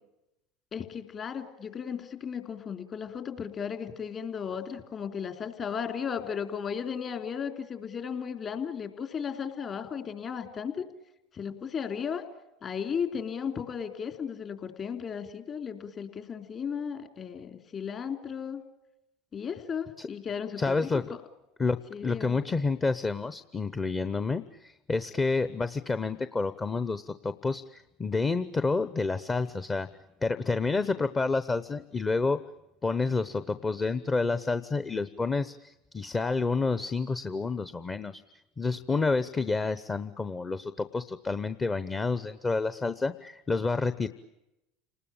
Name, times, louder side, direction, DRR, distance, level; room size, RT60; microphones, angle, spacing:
voice 1, 0.7-10.8 11.3-12.2 12.6-18.6 19.3-21.2 21.9-22.4, left 7 dB, 40° left, 6 dB, 3.3 m, -35 dB
voice 2, 20.6-21.1 21.6-29.9 30.2-32.4 32.8-38.2 38.6-44.1, left 3 dB, 25° left, 12 dB, 0.9 m, -29 dB
29.5 x 20.0 x 8.9 m, 0.91 s
hypercardioid pair, 85°, 0 cm